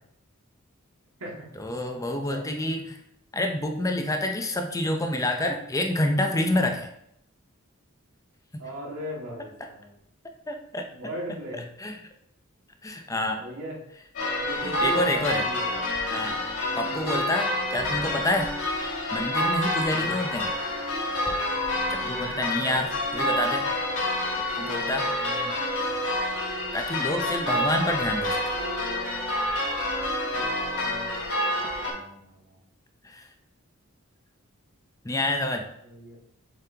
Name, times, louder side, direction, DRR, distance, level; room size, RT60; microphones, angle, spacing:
voice 1, 1.6-3.0 3.3-6.9 10.5-10.9 11.5-12.0 12.8-13.4 14.6-15.4 16.1-16.4 16.8-18.5 19.1-20.5 21.9-23.6 24.6-25.1 26.7-28.4 33.0-33.3 35.0-35.6, left 1 dB, 15° left, 4 dB, 0.6 m, -28 dB
voice 2, 2.1-2.4 8.6-9.9 10.9-11.6 13.4-13.8 14.4-15.8 19.9-20.2 22.0-22.3 25.2-25.5 30.3-32.6 35.8-36.2, equal, 80° right, -3 dB, 2.1 m, -38 dB
sound 1, 14.2-31.9, left 1 dB, 65° left, 2.2 m, -28 dB
7.1 x 5.3 x 2.9 m, 0.75 s
head